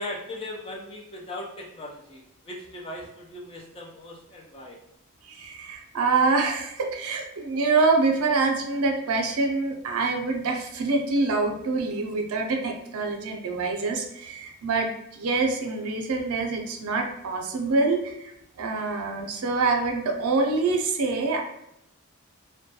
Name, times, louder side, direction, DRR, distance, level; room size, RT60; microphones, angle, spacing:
voice 1, 0.0-4.8, left 1 dB, 25° left, 0 dB, 0.3 m, -38 dB
voice 2, 5.3-18.3 18.6-21.4, right 3 dB, 75° right, 3 dB, 0.4 m, -25 dB
2.2 x 2.1 x 2.7 m, 0.81 s
head